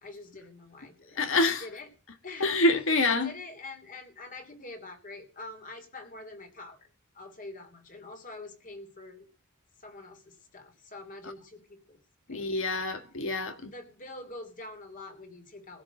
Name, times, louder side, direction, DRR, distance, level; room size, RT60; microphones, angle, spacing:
voice 1, 0.0-1.9 2.2-2.6 3.1-6.9 7.1-9.3 9.8-12.0 12.3-12.9 13.6-15.8, left 2 dB, 40° left, 3.0 m, -45 dB
voice 2, 1.1-1.6 2.4-3.3 12.3-13.7, left 2 dB, 65° left, 1.7 m, -26 dB
16.5 x 5.9 x 8.8 m
head